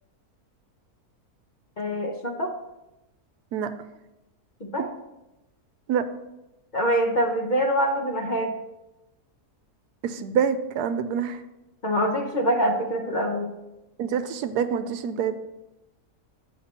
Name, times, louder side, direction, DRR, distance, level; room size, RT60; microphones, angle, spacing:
voice 1, 1.8-2.5 4.6-4.8 6.7-8.5 11.8-13.5, equal, 40° left, -1 dB, 0.8 m, -25 dB
voice 2, 10.0-11.4 14.0-15.4, right 7 dB, 90° right, 10 dB, 1.2 m, -26 dB
8.4 x 5.2 x 4.3 m, 0.96 s
omnidirectional pair, 1.7 m